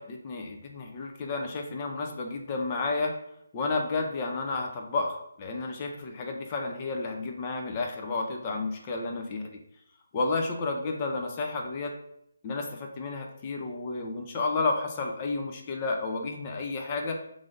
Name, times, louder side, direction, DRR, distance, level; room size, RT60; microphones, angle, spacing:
voice 1, 0.0-3.1 3.5-9.6 10.1-11.9 12.4-17.2, left 3 dB, 25° left, 2 dB, 0.4 m, -31 dB
3.1 x 2.5 x 3.8 m, 0.76 s
hypercardioid pair, 165°, 0 cm